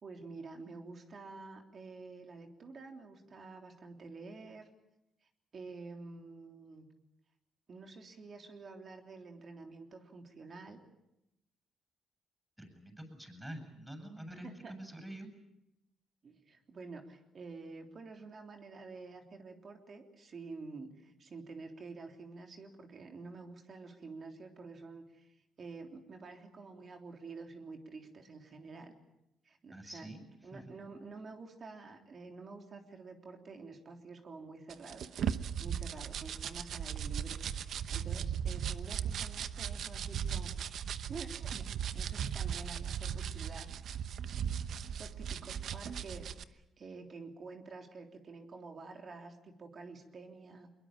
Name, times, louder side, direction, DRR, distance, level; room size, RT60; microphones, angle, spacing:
voice 1, 0.0-4.7 5.2-6.9 7.7-10.8 14.4-14.7 16.2-28.9 29.4-30.1 30.4-35.1 35.6-37.4 37.6-40.7 41.1-43.7 44.7-50.7, right 4 dB, 45° right, 4 dB, 3.4 m, -49 dB
voice 2, 12.6-15.3 29.7-30.2 30.5-30.6, right 1 dB, 10° right, 6 dB, 7.9 m, -47 dB
sound 1, 34.7-46.4, right 8 dB, 65° right, 1.0 m, -37 dB
23.5 x 21.5 x 8.9 m, 0.90 s
cardioid pair, 90°, 0 cm